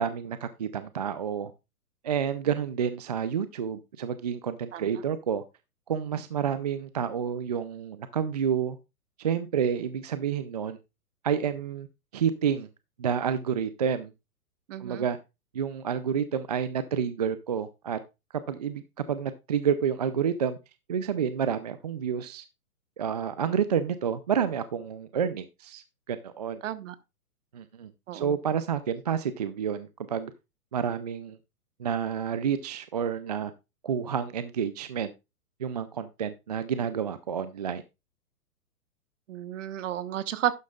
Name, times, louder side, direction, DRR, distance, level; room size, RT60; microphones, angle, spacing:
voice 1, 0.0-1.5 2.0-5.4 5.9-8.8 9.2-10.8 11.2-11.9 12.1-12.7 13.0-14.1 14.8-15.2 15.5-18.0 18.5-20.6 20.9-22.4 23.0-26.6 27.5-30.3 30.7-31.4 31.8-33.5 33.8-35.1 35.6-37.8, right 7 dB, 30° right, 0.4 m, -29 dB
voice 2, 14.7-15.0 26.6-26.9 28.1-28.3 39.3-40.5, right 11 dB, 50° right, 1.2 m, -32 dB
12.0 x 9.2 x 2.4 m
hypercardioid pair, 145°, 46 cm